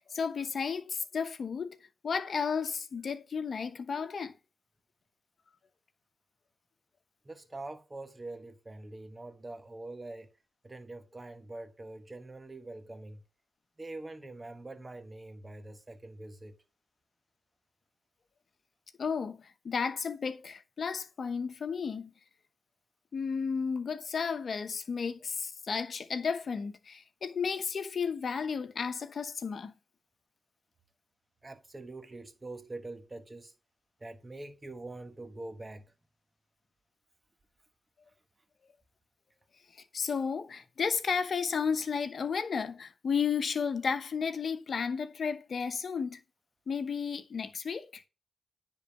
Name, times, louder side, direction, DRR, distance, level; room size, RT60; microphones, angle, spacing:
voice 1, 0.0-1.8 2.0-4.3 19.0-22.1 23.1-29.7 39.9-46.2 46.7-48.0, left 6 dB, 65° left, 0.9 m, -33 dB
voice 2, 7.2-10.3 10.6-13.2 13.8-16.5 31.4-33.5 34.0-35.9, right 2 dB, 30° right, 1.5 m, -44 dB
9.9 x 4.0 x 5.7 m
supercardioid pair, 45°, 0 cm